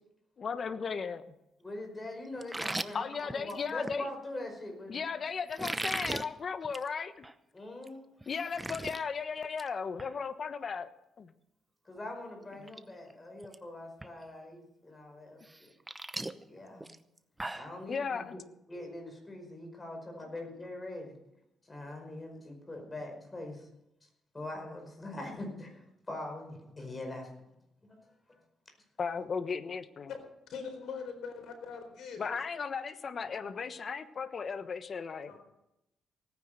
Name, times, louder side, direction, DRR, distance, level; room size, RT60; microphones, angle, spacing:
voice 1, 0.4-1.2 2.9-4.1 4.9-7.3 8.3-10.9 11.2-11.3 16.7-16.8 17.9-18.4 29.0-30.1 32.2-35.3, left 5 dB, 45° left, 11 dB, 1.2 m, -36 dB
voice 2, 1.6-5.0 7.5-8.1 11.8-15.7 16.4-16.9 17.5-18.4 18.7-21.1 21.7-23.7 24.3-27.3 27.9-28.0, left 1 dB, 25° left, 3 dB, 5.1 m, -43 dB
sound 1, 2.4-4.0 5.5-6.3 6.6-6.9 7.2-7.3 7.8-7.9 8.2-9.0 9.4-9.7 10.0-10.1 12.0-12.1 12.5-12.8 13.1-13.6 14.0-14.1 15.4-17.7, right 2 dB, 15° right, 0.8 m, -38 dB
voice 3, 30.5-32.3 35.3-35.4, left 6 dB, 75° left, 5 dB, 4.3 m, -41 dB
17.5 x 9.9 x 6.6 m, 0.86 s
cardioid pair, 90°, 0 cm